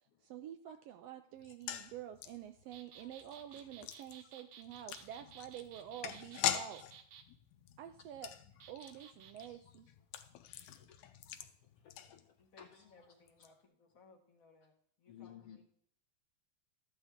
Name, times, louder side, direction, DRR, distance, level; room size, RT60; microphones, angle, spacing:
voice 1, 0.2-6.8 7.8-8.3 8.7-9.9, right 10 dB, 80° right, 9 dB, 1.4 m, -48 dB
sound 1, 1.4-12.6 12.9-13.0 13.3-13.5, left 11 dB, 90° left, 2.2 m, -44 dB
sound 2, 2.7-7.3 8.6-9.5, right 8 dB, 65° right, 1.6 m, -56 dB
voice 2, 11.4-13.1 15.1-15.6, left 9 dB, 70° left, 4 dB, 1.6 m, -58 dB
voice 3, 12.4-15.6, left 3 dB, 50° left, 3 dB, 1.1 m, -64 dB
13.5 x 9.8 x 3.7 m, 0.64 s
omnidirectional pair, 3.4 m